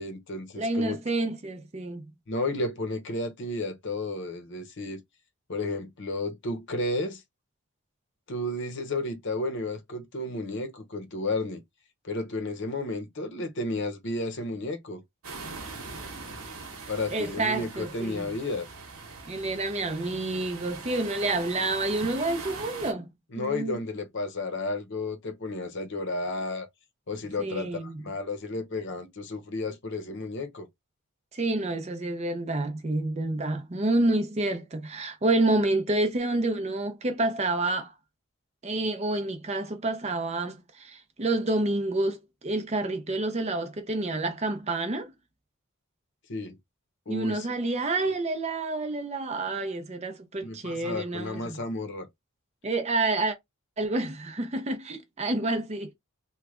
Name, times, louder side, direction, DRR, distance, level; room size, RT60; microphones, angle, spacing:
voice 1, 0.0-1.0 2.3-5.0 5.5-7.2 8.3-11.6 12.0-15.0 16.9-18.7 23.3-26.7 27.1-30.7 46.3-46.6 47.1-47.5 48.0-48.1 50.4-52.1, left 2 dB, 55° left, 0.8 m, -32 dB
voice 2, 0.5-2.1 17.1-18.3 19.3-23.1 23.4-23.8 27.4-28.0 31.3-37.9 38.6-42.2 42.4-45.1 47.1-51.6 52.6-53.4 53.8-55.9, right 2 dB, 30° right, 0.6 m, -28 dB
sound 1, 15.2-22.9, right 3 dB, 70° right, 1.1 m, -41 dB
3.2 x 2.3 x 3.5 m
head